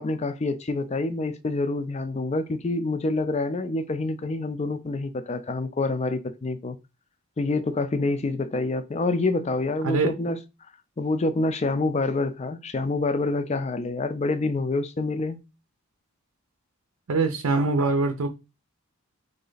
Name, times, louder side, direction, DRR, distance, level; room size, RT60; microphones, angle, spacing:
voice 1, 0.0-6.8 7.4-10.4 11.0-15.4, left 2 dB, 30° left, 0.4 m, -27 dB
voice 2, 17.1-18.3, right 3 dB, 75° right, 0.6 m, -23 dB
4.0 x 3.2 x 3.9 m
head